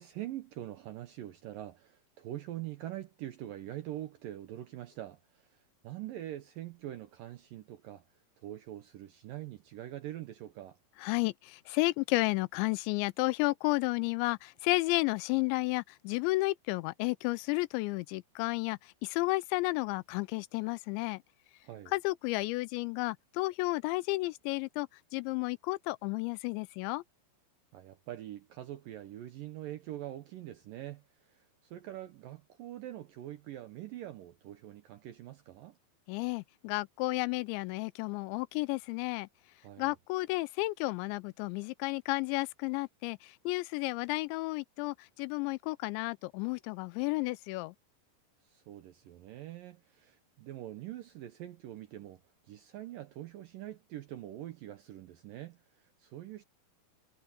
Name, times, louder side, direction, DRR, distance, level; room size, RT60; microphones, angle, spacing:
voice 1, 0.0-8.1 8.4-10.8 21.6-21.9 27.7-35.8 39.6-39.9 48.4-52.2 52.5-56.4, right 13 dB, 75° right, 2.1 m, -44 dB
voice 2, 11.0-21.2 21.9-27.0 36.1-39.3 39.8-47.7, left 22 dB, 90° left, 2.9 m, -32 dB
omnidirectional pair, 5.1 m